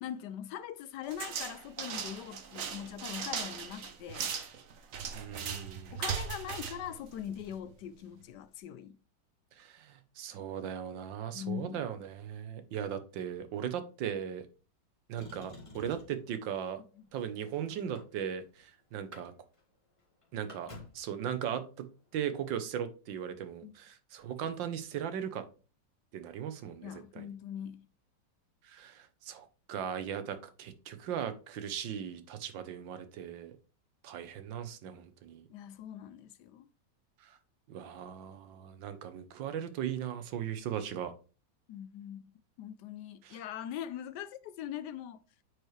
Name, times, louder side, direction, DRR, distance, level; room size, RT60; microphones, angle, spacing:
voice 1, 0.0-4.3 5.9-9.0 11.3-11.8 17.0-17.1 23.6-23.7 26.8-27.9 35.5-36.7 41.7-42.3 42.6-45.2, left 10 dB, 75° left, 1.1 m, -42 dB
sound 1, 1.1-7.7, right 7 dB, 55° right, 1.2 m, -38 dB
voice 2, 5.1-6.0 9.5-14.5 15.1-16.8 17.1-19.3 20.3-21.9 22.1-25.4 26.1-27.3 28.6-33.5 34.0-35.5 37.2-37.4 37.7-41.1 43.2-43.4, right 9 dB, 80° right, 1.6 m, -38 dB
Motor vehicle (road), 15.1-16.3 17.1-18.6 18.9-19.3 19.5-19.6 20.0-21.1 22.2-22.3, left 2 dB, 15° left, 1.7 m, -51 dB
9.4 x 4.7 x 3.2 m
omnidirectional pair, 2.0 m